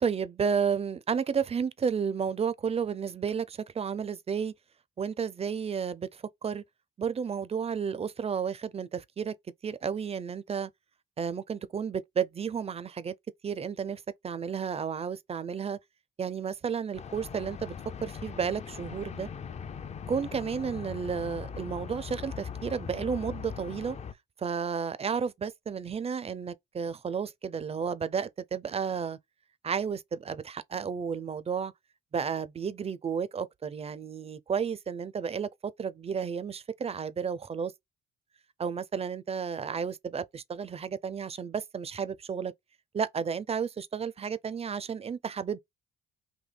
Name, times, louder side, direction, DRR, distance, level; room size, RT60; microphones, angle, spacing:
voice 1, 0.0-4.5 5.0-6.6 7.0-9.3 9.6-10.7 11.2-13.1 13.4-15.8 16.2-17.7 18.0-19.3 20.1-24.0 24.4-29.2 29.6-31.7 32.1-37.7 38.6-42.5 42.9-45.6, right 6 dB, 30° right, 0.4 m, -32 dB
sound 1, 16.9-24.1, left 6 dB, 35° left, 0.4 m, -40 dB
3.9 x 2.7 x 3.3 m
cardioid pair, 90°, 20 cm